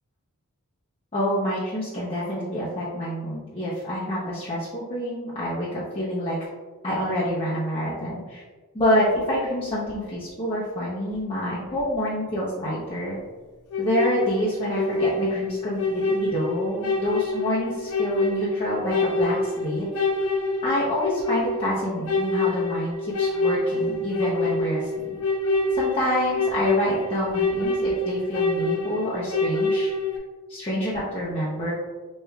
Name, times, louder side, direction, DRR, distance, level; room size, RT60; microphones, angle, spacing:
voice 1, 1.1-6.4 6.8-8.4 8.7-13.2 13.8-19.8 20.6-25.2 25.7-29.9 30.5-31.7, equal, 25° left, -9 dB, 0.7 m, -27 dB
sound 1, 13.7-30.2, left 2 dB, 85° left, 0.6 m, -26 dB
4.8 x 3.1 x 2.3 m, 1.3 s
head